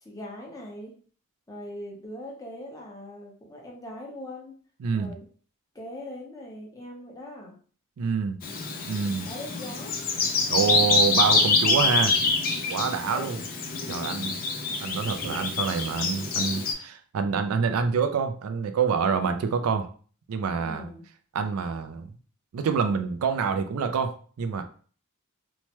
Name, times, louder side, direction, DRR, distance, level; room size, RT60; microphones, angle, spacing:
voice 1, 0.0-0.9 1.5-4.5 4.9-5.3 5.7-7.5 9.2-9.9 12.7-13.5 20.6-21.0, left 1 dB, 15° left, -2 dB, 0.8 m, -41 dB
voice 2, 4.8-5.1 8.0-8.4 8.9-9.3 10.5-12.1 12.7-13.4 13.9-14.4 14.8-19.9 20.3-20.9 21.3-22.1 22.5-24.6, right 6 dB, 80° right, 8 dB, 0.4 m, -27 dB
Bird vocalization bird call bird song, 8.4-16.7, left 4 dB, 40° left, 0.5 m, -26 dB
3.1 x 2.1 x 2.9 m, 0.42 s
head